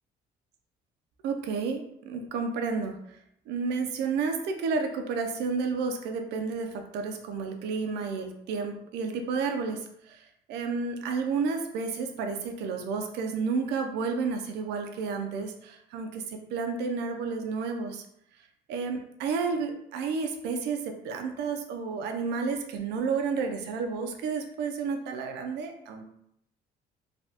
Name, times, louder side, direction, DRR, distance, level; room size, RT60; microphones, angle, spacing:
voice 1, 1.2-3.0 3.5-10.2 10.5-18.0 18.7-26.1, right 5 dB, 85° right, 5 dB, 0.5 m, -31 dB
3.3 x 2.3 x 2.8 m, 0.75 s
cardioid pair, 110°, 17 cm